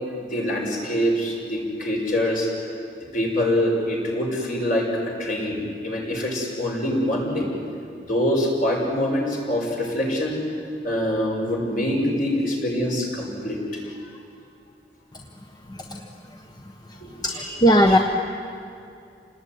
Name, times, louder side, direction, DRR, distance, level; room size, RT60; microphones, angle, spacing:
voice 1, 0.2-2.5 3.1-7.5 8.0-10.4 10.8-13.6 17.0-17.6, left 1 dB, 50° left, -1 dB, 5.9 m, -25 dB
voice 2, 17.2-18.0, equal, 20° left, 2 dB, 1.2 m, -17 dB
29.0 x 19.5 x 9.5 m, 2.5 s
head